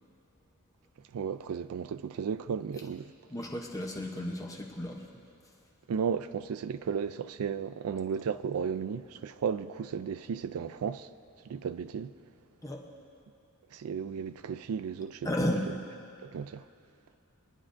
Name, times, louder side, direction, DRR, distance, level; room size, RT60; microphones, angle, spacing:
voice 1, 1.1-3.1 5.9-11.1 11.5-12.2 13.7-15.3 16.2-16.7, right 6 dB, 75° right, 0.3 m, -34 dB
voice 2, 3.3-5.1 12.6-12.8 15.2-15.7, left 1 dB, 15° left, 0.7 m, -33 dB
21.5 x 9.6 x 2.6 m
head